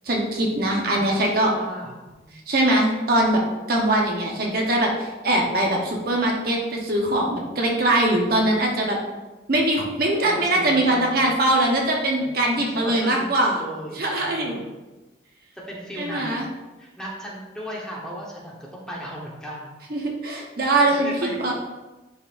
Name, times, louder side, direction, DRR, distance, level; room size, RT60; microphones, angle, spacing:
voice 1, 0.0-1.5 2.5-3.4 3.7-9.0 9.5-13.6 14.0-14.6 16.0-16.5 19.9-21.5, right 1 dB, 55° right, -1 dB, 1.0 m, -22 dB
voice 2, 0.9-2.3 10.3-11.3 12.2-14.6 15.7-16.5 16.8-19.8 20.8-21.5, equal, 5° left, -4 dB, 1.1 m, -37 dB
10.0 x 4.1 x 2.5 m, 1.1 s
head